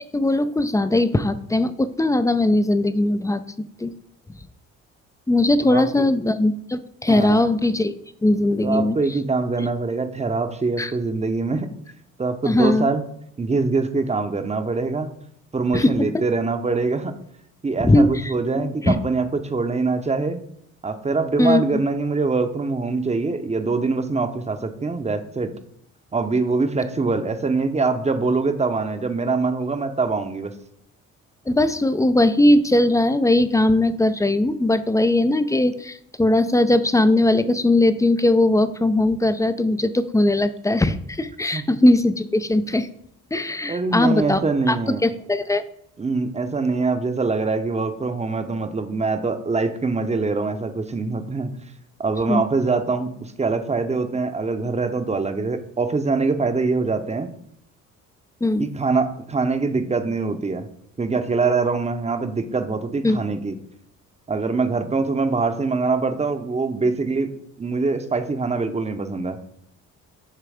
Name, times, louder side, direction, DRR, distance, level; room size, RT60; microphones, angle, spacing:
voice 1, 0.1-3.4 3.8-3.9 5.3-9.0 9.6-9.7 10.8-10.9 12.5-12.9 15.7-15.9 17.8-19.0 21.4-21.6 31.5-42.9 43.3-44.4 44.7-44.8 45.0-45.6 52.3-52.4 58.4-58.7 63.0-63.2, left 1 dB, 10° left, 13 dB, 0.4 m, -19 dB
voice 2, 5.7-6.1 7.1-7.5 8.6-11.7 12.2-13.0 13.4-15.1 15.5-17.1 17.6-20.4 20.8-25.5 26.1-30.5 41.5-41.6 43.7-45.0 46.0-51.5 52.0-57.3 58.6-60.7 61.0-63.5 64.3-67.3 67.6-69.4, right 4 dB, 20° right, 9 dB, 0.7 m, -23 dB
6.7 x 3.4 x 4.9 m, 0.70 s
supercardioid pair, 70°, 34 cm